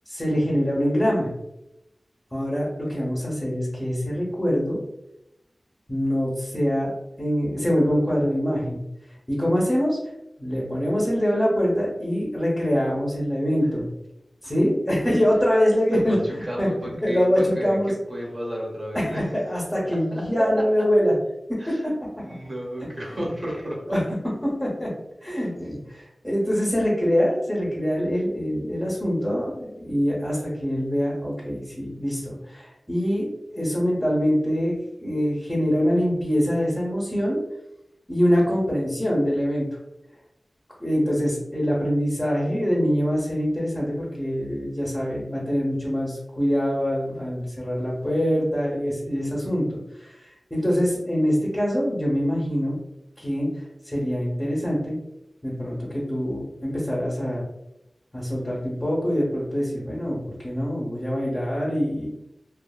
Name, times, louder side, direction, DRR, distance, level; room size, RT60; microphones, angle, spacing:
voice 1, 0.1-1.3 2.3-4.8 5.9-6.9 7.2-8.8 9.3-10.0 10.4-13.9 14.4-16.7 17.0-17.9 18.9-19.1 19.4-21.1 21.5-21.9 22.8-22.9 23.1-23.2 23.9-24.0 24.4-24.9 25.2-37.4 38.1-39.7 40.8-52.8 53.2-55.0 55.4-57.5 58.1-60.2 60.4-62.1, equal, 10° left, -6 dB, 0.9 m, -24 dB
voice 2, 15.9-19.3 19.8-20.6 21.6-21.9 22.2-24.0, equal, 30° right, -3 dB, 1.0 m, -32 dB
2.6 x 2.4 x 2.3 m, 0.89 s
wide cardioid pair, 60°, 0 cm